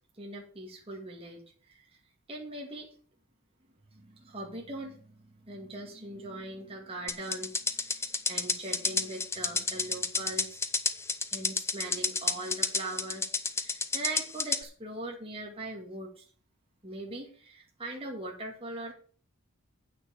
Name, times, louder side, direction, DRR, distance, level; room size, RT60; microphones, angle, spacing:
voice 1, 0.2-1.4 1.7-1.8 2.3-2.9 3.9-10.6 11.3-16.3 16.8-18.9, right 2 dB, 25° right, -1 dB, 2.3 m, -41 dB
sound 1, 7.1-14.6, left 4 dB, 10° left, 0.6 m, -30 dB
8.4 x 6.4 x 6.6 m, 0.43 s
head